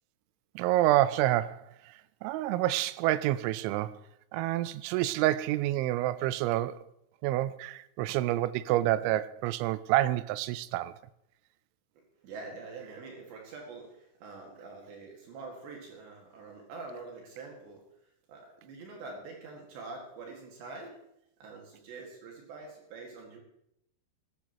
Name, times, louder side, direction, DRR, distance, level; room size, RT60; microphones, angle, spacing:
voice 1, 0.6-1.6 2.2-4.0 4.3-6.8 7.2-10.9, right 15 dB, 85° right, 3.0 m, -28 dB
voice 2, 12.2-17.9 18.3-21.0 21.4-23.4, right 3 dB, 70° right, 4.1 m, -45 dB
17.5 x 13.5 x 3.0 m
omnidirectional pair, 5.4 m